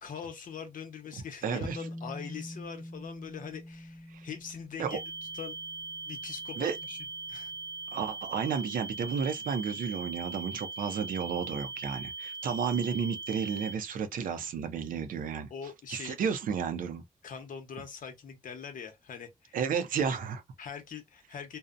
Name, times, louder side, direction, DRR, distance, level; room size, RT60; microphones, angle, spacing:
voice 1, 0.0-5.0 5.3-5.5 6.0-7.0 7.3-7.5 15.5-16.2 17.2-19.6 20.6-21.6, left 7 dB, 75° left, 0.7 m, -42 dB
voice 2, 1.4-1.8 4.1-4.3 4.8-5.0 6.6-6.8 7.9-15.5 15.9-17.0 19.5-20.4, right 7 dB, 90° right, 0.5 m, -32 dB
sound 1, 1.6-8.2, left 1 dB, 5° left, 0.6 m, -46 dB
sound 2, 4.9-13.7, right 3 dB, 35° right, 0.6 m, -40 dB
2.7 x 2.0 x 2.4 m
cardioid pair, 60°, 14 cm